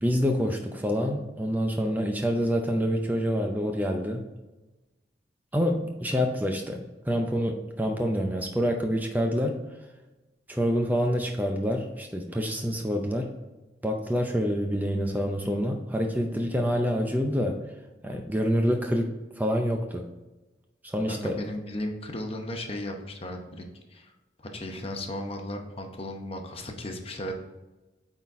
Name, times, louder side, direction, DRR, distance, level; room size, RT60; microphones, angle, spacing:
voice 1, 0.0-4.3 5.5-9.6 10.5-13.3 13.8-17.6 18.0-20.0 20.8-21.4, equal, 10° right, 3 dB, 0.5 m, -27 dB
voice 2, 21.1-24.1 24.5-27.3, left 1 dB, 30° left, 4 dB, 0.8 m, -35 dB
8.6 x 4.0 x 3.6 m, 1.1 s
head